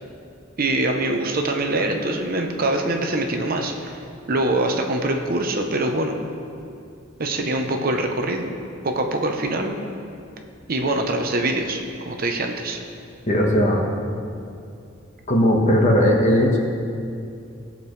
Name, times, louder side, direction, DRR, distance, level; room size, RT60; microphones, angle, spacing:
voice 1, 0.6-4.0 4.3-6.2 7.2-8.5 8.8-9.8 10.7-12.8, right 2 dB, 50° right, 3 dB, 0.9 m, -24 dB
voice 2, 13.3-13.8 15.3-16.6, equal, 35° left, -1 dB, 1.4 m, -17 dB
17.5 x 6.7 x 3.3 m, 2.5 s
head